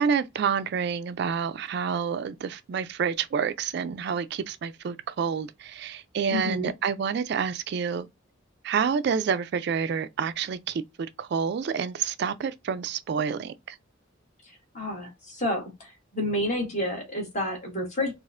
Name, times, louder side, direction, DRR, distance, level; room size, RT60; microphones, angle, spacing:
voice 1, 0.0-8.1 8.6-10.8 11.2-13.8, right 6 dB, 55° right, 0.3 m, -28 dB
voice 2, 6.3-6.7 14.4-18.1, left 1 dB, 35° left, 1.6 m, -30 dB
4.1 x 2.4 x 2.4 m
head